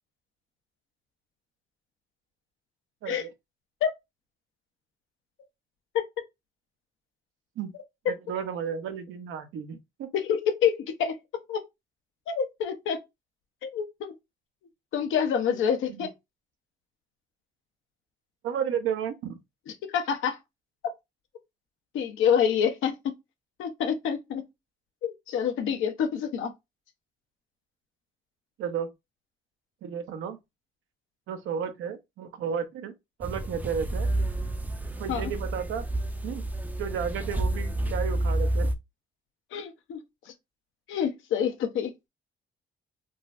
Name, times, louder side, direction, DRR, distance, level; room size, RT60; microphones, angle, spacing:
voice 1, 8.1-10.1 15.9-16.1 18.4-19.4 28.6-28.9 29.8-30.4 31.3-32.9 33.2-34.1 35.0-35.8 36.2-36.4 36.8-38.7, right 7 dB, 80° right, 0.7 m, -33 dB
voice 2, 10.1-11.2 11.5-11.6 12.3-13.0 13.6-14.1 14.9-16.1 19.9-20.4 21.9-23.1 23.6-24.4 25.0-26.5 35.1-35.3 39.5-40.3 40.9-41.9, left 8 dB, 80° left, 0.7 m, -27 dB
sound 1, 33.2-38.7, right 1 dB, 10° right, 0.4 m, -29 dB
3.8 x 2.0 x 2.5 m
cardioid pair, 90°, 20 cm